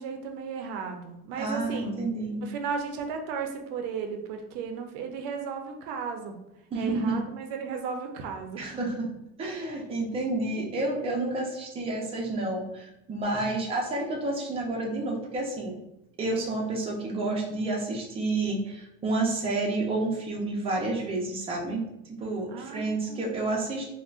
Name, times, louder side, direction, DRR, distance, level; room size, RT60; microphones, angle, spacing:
voice 1, 0.0-2.1 2.4-6.4 6.7-8.7 13.5-13.7 22.5-23.5, right 5 dB, 85° right, 4 dB, 0.5 m, -35 dB
voice 2, 1.4-2.4 6.7-7.2 8.6-9.1 9.4-15.8 16.2-23.9, right 2 dB, 20° right, -2 dB, 0.5 m, -30 dB
3.6 x 2.1 x 2.3 m, 0.88 s
cardioid pair, 150°, 29 cm